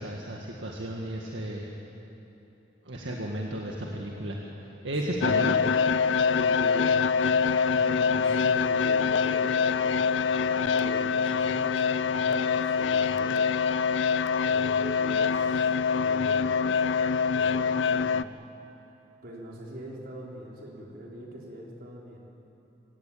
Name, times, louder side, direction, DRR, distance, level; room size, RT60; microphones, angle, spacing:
voice 1, 0.0-1.7 2.9-4.4 4.8-5.6, right 1 dB, 80° right, -1 dB, 2.0 m, -33 dB
voice 2, 5.1-5.4 6.2-7.0 7.7-13.4 13.8-16.7 17.3-18.4 19.2-22.2, right 1 dB, 55° right, -2 dB, 4.3 m, -42 dB
sound 1, 5.2-18.2, left 5 dB, 80° left, 0.5 m, -25 dB
26.0 x 16.5 x 8.7 m, 3.0 s
head